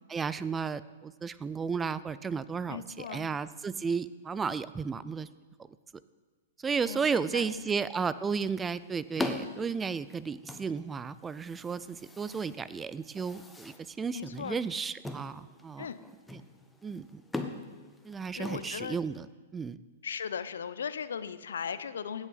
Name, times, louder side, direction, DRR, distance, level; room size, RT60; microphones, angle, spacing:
voice 1, 0.1-5.3 6.6-15.9 16.3-16.4 16.8-17.2 18.0-19.8, right 5 dB, 15° right, 17 dB, 0.4 m, -33 dB
voice 2, 2.7-3.3 6.8-7.5 14.1-14.6 15.8-16.0 18.4-19.0 20.0-22.3, left 7 dB, 75° left, 14 dB, 0.6 m, -37 dB
sound 1, 8.2-19.2, left 2 dB, 5° left, 1.0 m, -42 dB
16.0 x 8.2 x 4.0 m, 1.3 s
hypercardioid pair, 115°, 0 cm